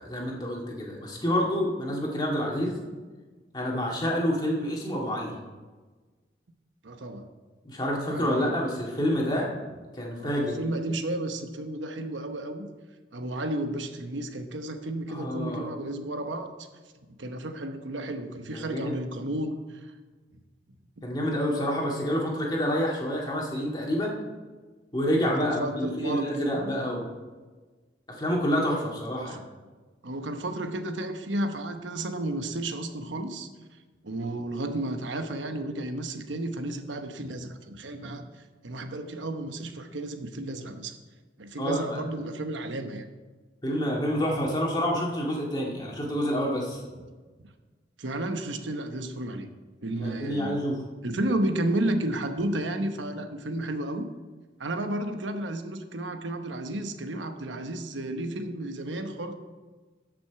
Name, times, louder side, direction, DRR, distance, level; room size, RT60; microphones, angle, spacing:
voice 1, 0.0-2.8 3.5-5.3 7.6-9.5 9.9-10.6 15.1-15.7 18.5-19.0 21.0-24.2 24.9-27.1 28.2-29.4 41.6-42.0 43.6-46.8 50.0-50.8, equal, 25° left, -2 dB, 2.0 m, -28 dB
voice 2, 6.8-7.3 8.1-8.6 10.2-12.7 13.1-16.7 17.2-19.9 20.3-20.4 21.0-21.2 25.2-27.0 29.2-29.4 30.0-33.5 34.0-41.0 41.4-43.1 47.0-47.1 47.4-47.5 48.0-49.5 49.8-50.6 51.0-54.1 54.6-59.3, right 1 dB, 85° right, 7 dB, 1.0 m, -32 dB
13.5 x 6.1 x 4.7 m, 1.3 s
head